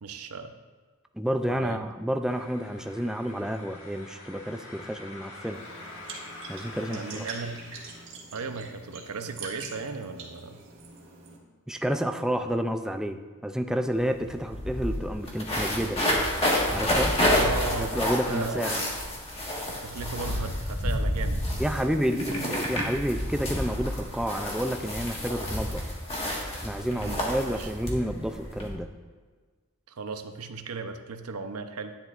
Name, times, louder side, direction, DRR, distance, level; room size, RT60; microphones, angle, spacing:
voice 1, 0.0-0.5 1.5-1.8 6.8-7.8 8.3-10.6 17.1-18.9 19.7-21.4 21.8-22.5 26.9-27.7 29.9-32.0, right 4 dB, 90° right, 7 dB, 0.7 m, -36 dB
voice 2, 1.2-5.6 6.5-7.2 11.7-16.0 16.7-17.1 17.8-18.8 21.6-25.9 26.5-28.9, equal, 5° right, 6 dB, 0.3 m, -30 dB
sound 1, 2.2-8.0, left 2 dB, 65° left, 1.5 m, -45 dB
sound 2, 5.5-11.4, right 4 dB, 60° right, 1.6 m, -44 dB
sound 3, 13.9-14.0 14.3-28.7, left 1 dB, 25° left, 1.5 m, -29 dB
10.5 x 10.0 x 2.4 m, 1.5 s
head